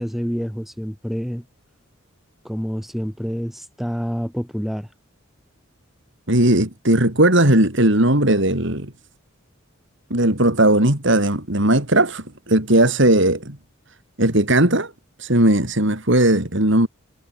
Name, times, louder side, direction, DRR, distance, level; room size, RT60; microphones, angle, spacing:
voice 1, 0.0-1.5 2.4-4.9, equal, ahead, 3.5 m, -27 dB
voice 2, 6.3-8.9 10.1-13.6 14.2-14.9 15.2-16.9, right 1 dB, 60° right, 4.4 m, -17 dB
head